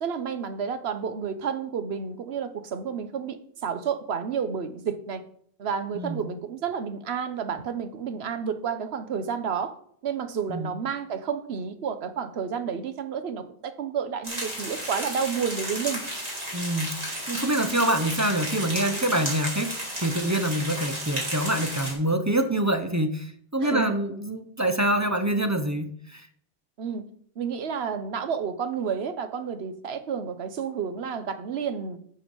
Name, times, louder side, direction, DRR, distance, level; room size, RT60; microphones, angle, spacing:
voice 1, 0.0-3.4 3.6-5.2 5.6-9.7 10.0-16.0 17.6-17.7 23.6-23.9 26.8-27.0 27.4-32.0, right 6 dB, 75° right, 10 dB, 1.1 m, -30 dB
sound 1, 14.2-21.9, right 1 dB, 35° right, 3.3 m, -33 dB
voice 2, 16.5-26.3, right 1 dB, 20° right, 7 dB, 0.6 m, -26 dB
11.0 x 5.5 x 5.4 m, 0.63 s
omnidirectional pair, 1.1 m